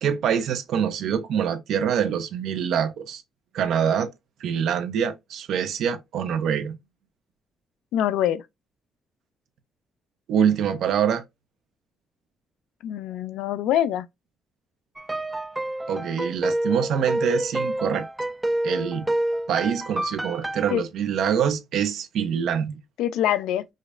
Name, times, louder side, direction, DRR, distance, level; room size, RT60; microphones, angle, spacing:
voice 1, 0.0-3.2 3.5-4.1 4.4-6.8 10.3-11.2 15.9-18.1 18.6-19.1 19.5-22.8, right 8 dB, 75° right, 0.6 m, -25 dB
voice 2, 7.9-8.4 12.8-14.1 20.7-20.8 23.0-23.7, left 11 dB, 90° left, 0.3 m, -24 dB
sound 1, 15.0-20.7, right 1 dB, 15° right, 0.3 m, -28 dB
4.9 x 2.1 x 2.5 m
cardioid pair, 90°, 0 cm